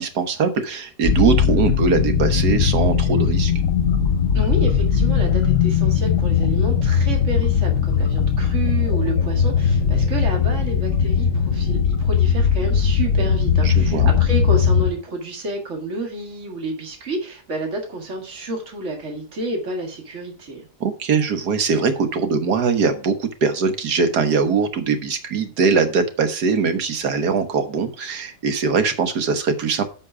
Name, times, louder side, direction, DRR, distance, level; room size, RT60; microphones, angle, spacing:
voice 1, 0.0-3.5 13.6-14.1 20.8-29.8, right 5 dB, 80° right, 8 dB, 1.8 m, -21 dB
sound 1, 1.0-14.9, left 7 dB, 55° left, 1.2 m, -19 dB
voice 2, 4.3-20.7, right 2 dB, 50° right, 2 dB, 2.2 m, -30 dB
9.9 x 5.5 x 4.8 m, 0.37 s
omnidirectional pair, 1.7 m